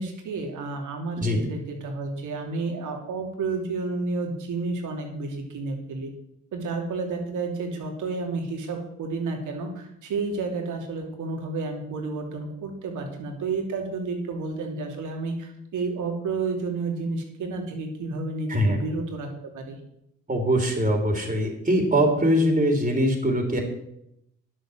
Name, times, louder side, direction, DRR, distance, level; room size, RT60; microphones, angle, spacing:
voice 1, 0.0-6.1 6.5-19.8, right 3 dB, 75° right, 3 dB, 3.0 m, -31 dB
voice 2, 18.5-18.8 20.3-23.6, equal, 25° right, 3 dB, 3.7 m, -22 dB
10.0 x 7.9 x 7.5 m, 0.79 s
supercardioid pair, 55°, 31 cm